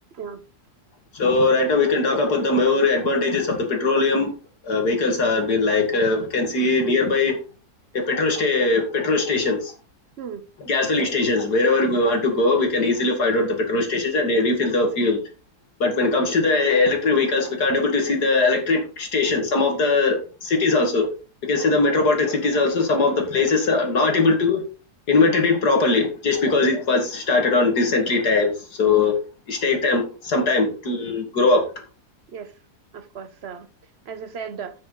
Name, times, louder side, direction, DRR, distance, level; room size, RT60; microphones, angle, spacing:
voice 1, 1.1-4.3 4.6-7.4 7.9-9.7 10.6-15.2 15.8-21.1 21.5-24.6 25.1-28.5 28.8-29.1 29.5-31.6, left 3 dB, 75° left, 2.8 m, -20 dB
voice 2, 32.9-33.7 34.1-34.7, right 7 dB, 45° right, 1.0 m, -35 dB
11.0 x 6.2 x 4.1 m
omnidirectional pair, 1.7 m